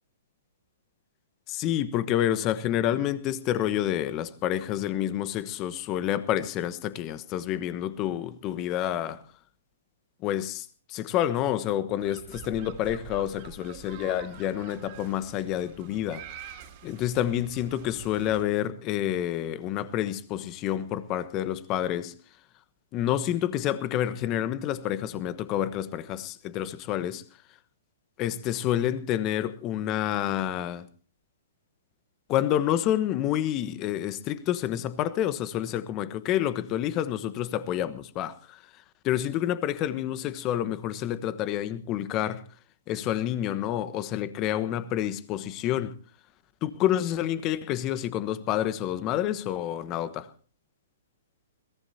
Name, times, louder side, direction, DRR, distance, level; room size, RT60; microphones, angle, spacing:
voice 1, 1.5-9.2 10.2-16.4 16.8-22.1 22.9-27.2 28.2-30.9 32.3-38.6 39.0-42.4 42.9-46.0 46.6-50.3, left 11 dB, 30° left, 1.2 m, -28 dB
sound 1, 12.0-18.4, right 9 dB, 45° right, 2.9 m, -46 dB
22.0 x 18.0 x 2.8 m
hypercardioid pair, 120°, 0 cm